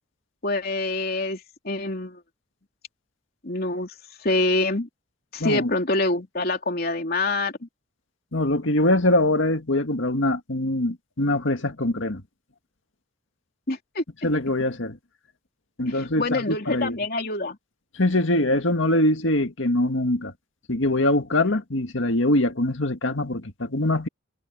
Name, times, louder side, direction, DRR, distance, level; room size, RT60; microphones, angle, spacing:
voice 1, 0.4-2.2 3.4-3.9 4.2-4.9 5.3-7.7 13.7-14.0 15.9-17.6, left 2 dB, 50° left, 3.2 m, -26 dB
voice 2, 5.4-5.7 8.3-12.2 14.2-15.0 15.8-16.9 17.9-20.3 20.7-24.1, left 1 dB, 75° left, 2.0 m, -23 dB
head